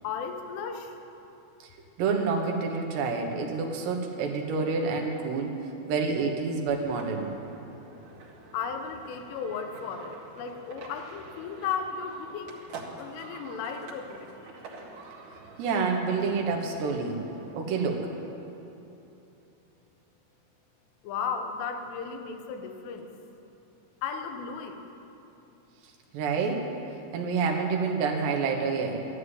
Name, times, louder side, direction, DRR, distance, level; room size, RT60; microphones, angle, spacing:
voice 1, 0.0-1.0 8.5-12.6 13.0-14.5 21.0-23.1 24.0-24.8, left 6 dB, 90° left, 5 dB, 3.7 m, -35 dB
voice 2, 2.0-5.6 5.9-7.3 15.6-17.2 17.5-18.1 26.1-26.7 27.1-29.1, right 4 dB, 70° right, 2 dB, 3.2 m, -28 dB
sound 1, 6.8-18.3, right 3 dB, 55° right, 2.7 m, -47 dB
13.0 x 11.5 x 9.6 m, 3.0 s
omnidirectional pair, 5.5 m